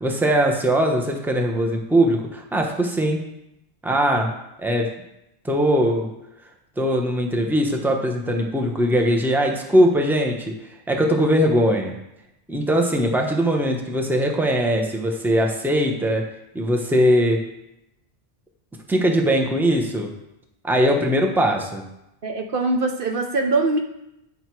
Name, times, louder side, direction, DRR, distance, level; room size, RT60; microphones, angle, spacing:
voice 1, 0.0-3.2 3.8-4.3 4.6-5.0 5.4-6.1 6.8-10.6 10.9-12.0 12.5-17.4 18.9-20.1 20.6-21.9, equal, ahead, 2 dB, 1.0 m, -20 dB
voice 2, 22.2-23.8, right 3 dB, 60° right, 3 dB, 0.9 m, -22 dB
9.5 x 6.5 x 4.7 m, 0.86 s
omnidirectional pair, 1.1 m